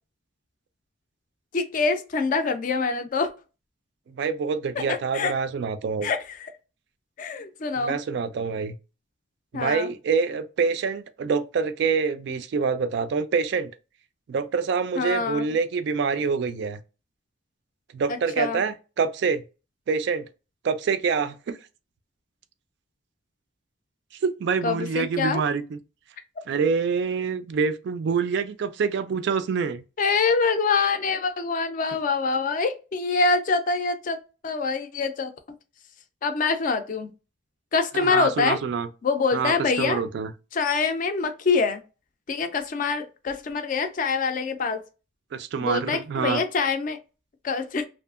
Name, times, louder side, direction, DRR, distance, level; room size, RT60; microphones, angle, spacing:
voice 1, 1.5-3.3 4.8-5.3 6.0-6.4 7.2-8.0 9.5-9.9 15.0-15.4 18.1-18.6 24.6-25.4 30.0-34.2 34.4-35.3 36.2-37.1 37.7-38.6 39.0-40.0 40.5-41.8 42.3-44.8 45.6-47.0 47.4-47.9, left 4 dB, 40° left, 0.4 m, -25 dB
voice 2, 4.1-6.1 7.8-8.8 9.5-13.7 14.3-16.8 17.9-19.4 19.9-20.2 20.6-21.6 24.2-25.8 26.5-29.8 37.9-38.9 39.3-40.3 45.3-46.4, right 5 dB, 60° right, 0.3 m, -26 dB
2.6 x 2.4 x 2.3 m
head